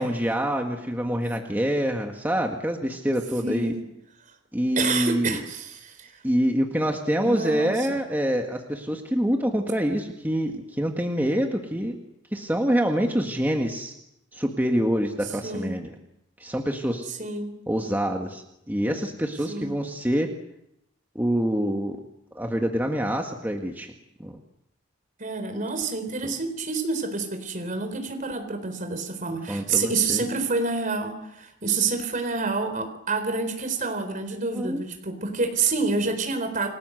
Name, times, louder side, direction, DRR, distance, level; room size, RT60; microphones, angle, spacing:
voice 1, 0.0-3.7 4.5-5.4 6.2-12.0 12.3-13.9 14.3-15.9 16.4-17.1 17.7-20.3 21.2-22.0 22.4-23.9 24.2-24.4 26.2-26.3 29.5-30.3 34.5-34.8, equal, 10° right, 2 dB, 1.8 m, -26 dB
voice 2, 3.4-3.8 4.8-6.2 7.2-8.0 15.4-15.8 17.1-17.6 19.5-19.8 25.2-36.7, right 4 dB, 40° right, 6 dB, 4.1 m, -28 dB
29.5 x 20.0 x 8.0 m, 0.83 s
head